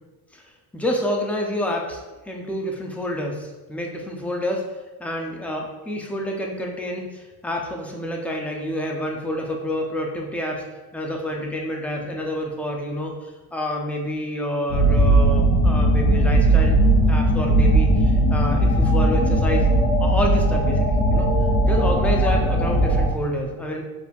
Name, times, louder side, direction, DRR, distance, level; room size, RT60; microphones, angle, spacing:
voice 1, 0.7-4.7 5.0-10.6 10.9-16.8 17.1-19.7 20.0-21.3 21.6-23.8, equal, 5° left, 1 dB, 0.3 m, -28 dB
sound 1, 14.7-23.1, right 1 dB, 65° left, 1.4 m, -18 dB
6.9 x 2.5 x 2.2 m, 1.2 s
cardioid pair, 130°, 40 cm